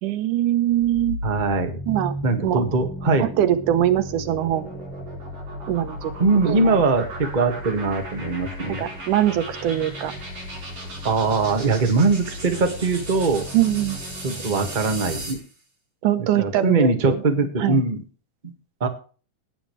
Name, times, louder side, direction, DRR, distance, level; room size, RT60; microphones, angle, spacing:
voice 1, 0.0-1.2 1.9-2.6 3.2-4.8 5.7-6.1 6.4-6.8 8.7-10.1 13.5-14.0 16.0-17.2 17.6-17.8, right 12 dB, 85° right, 11 dB, 2.6 m, -22 dB
sound 1, 0.7-15.5, equal, 65° right, 7.7 m, -34 dB
voice 2, 1.2-1.8 2.2-3.3 6.2-8.9 11.0-13.4 14.2-15.4 16.4-18.0 18.4-18.5 18.8-18.9, right 3 dB, 20° right, 4 dB, 1.3 m, -21 dB
19.0 x 8.7 x 3.2 m, 0.37 s
omnidirectional pair, 3.5 m